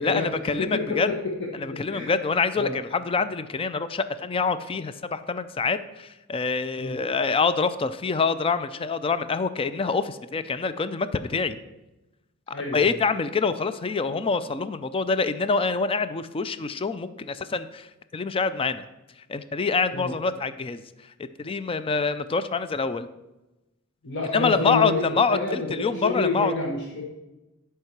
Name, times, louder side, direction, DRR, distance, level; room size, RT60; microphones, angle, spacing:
voice 1, 0.0-1.1 1.6-11.6 12.7-18.9 19.3-20.8 21.4-23.1 24.3-26.5, left 4 dB, 25° left, 12 dB, 0.4 m, -26 dB
voice 2, 0.6-2.1 2.6-2.8 6.8-7.0 12.5-12.9 19.9-20.1 24.0-27.0, left 3 dB, 55° left, -1 dB, 1.1 m, -29 dB
11.0 x 4.7 x 5.9 m, 1.0 s
head